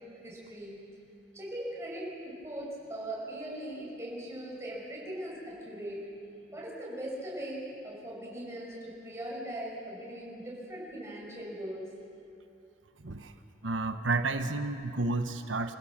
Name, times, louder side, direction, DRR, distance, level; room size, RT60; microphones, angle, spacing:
voice 1, 0.2-0.8 1.3-6.0 6.5-11.9, right 1 dB, 15° right, -5 dB, 6.2 m, -40 dB
voice 2, 13.0-13.3 13.6-15.8, right 3 dB, 80° right, 8 dB, 1.1 m, -31 dB
27.0 x 16.0 x 7.4 m, 2.7 s
head